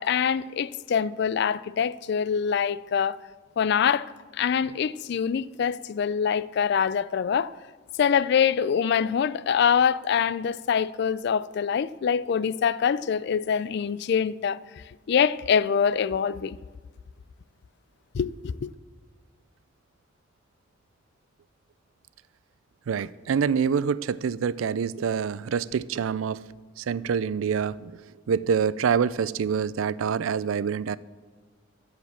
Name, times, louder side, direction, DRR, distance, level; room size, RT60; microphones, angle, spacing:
voice 1, 0.0-3.2 3.6-4.1 4.3-7.5 8.0-14.6 15.1-16.6 18.1-18.7, left 7 dB, 55° left, 0.3 m, -24 dB
voice 2, 22.9-26.4 26.8-28.0 28.3-31.0, right 6 dB, 90° right, 0.4 m, -26 dB
14.5 x 5.1 x 7.2 m
head